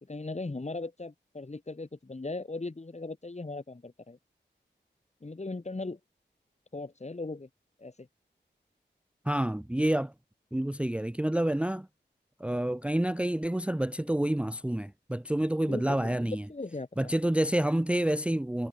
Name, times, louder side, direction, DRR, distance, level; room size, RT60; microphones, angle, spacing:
voice 1, 0.0-4.2 5.2-6.0 6.7-7.5 7.8-8.1 15.6-17.2, left 3 dB, 35° left, 1.9 m, -38 dB
voice 2, 9.3-10.1 10.5-11.9 12.4-16.4 17.0-18.7, right 1 dB, 5° right, 0.6 m, -28 dB
cardioid pair, 40°, 19 cm